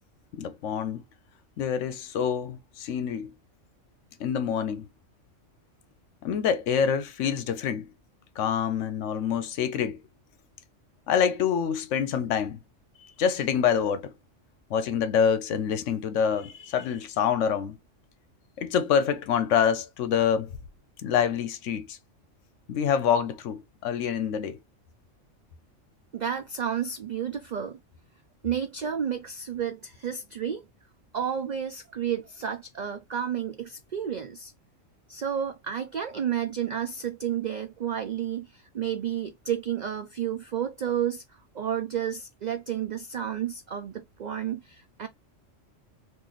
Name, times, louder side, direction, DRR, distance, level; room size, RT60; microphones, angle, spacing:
voice 1, 0.3-1.0 1.6-3.3 4.2-4.9 6.2-7.9 8.4-10.0 11.1-12.6 13.2-14.1 14.7-17.8 18.6-20.5 21.0-22.0 22.7-24.6, left 7 dB, 80° left, 1.0 m, -26 dB
voice 2, 26.1-27.8 28.4-30.6 31.1-34.5 35.1-45.1, right 9 dB, 75° right, 0.4 m, -31 dB
3.1 x 2.5 x 3.9 m
omnidirectional pair, 1.3 m